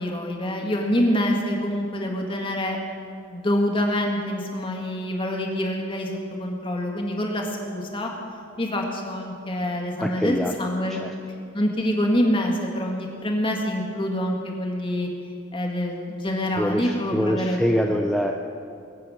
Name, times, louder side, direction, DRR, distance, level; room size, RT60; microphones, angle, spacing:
voice 1, 0.0-2.8 3.3-8.1 8.6-11.0 11.5-15.1 15.5-17.6 17.9-18.0, equal, 25° left, 1 dB, 2.0 m, -26 dB
voice 2, 10.0-10.6 10.9-11.1 16.6-18.3, equal, ahead, 1 dB, 0.6 m, -24 dB
22.0 x 8.5 x 6.4 m, 2.4 s
head